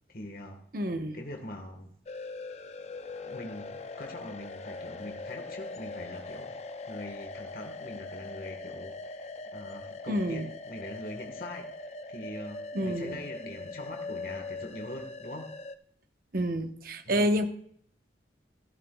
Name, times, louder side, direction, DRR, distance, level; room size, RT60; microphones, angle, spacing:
voice 1, 0.1-0.6 1.1-1.9 3.2-6.6 6.9-15.5 17.0-17.3, left 1 dB, 50° left, 3 dB, 1.5 m, -43 dB
voice 2, 0.7-1.2 10.1-10.5 12.7-13.2 16.3-17.4, equal, 50° right, 7 dB, 1.0 m, -29 dB
sound 1, 2.1-15.8, left 3 dB, 35° left, 0.5 m, -41 dB
16.0 x 11.5 x 2.3 m, 0.63 s
head